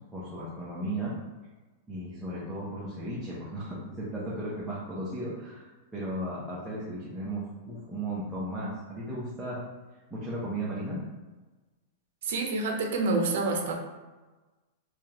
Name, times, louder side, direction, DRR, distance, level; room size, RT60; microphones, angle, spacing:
voice 1, 0.1-1.1 1.9-9.6 10.1-11.0, right 1 dB, 5° right, -9 dB, 0.7 m, -35 dB
voice 2, 12.2-13.7, right 3 dB, 65° right, 2 dB, 0.7 m, -27 dB
4.8 x 2.4 x 2.9 m, 1.2 s
supercardioid pair, 160°, 0 cm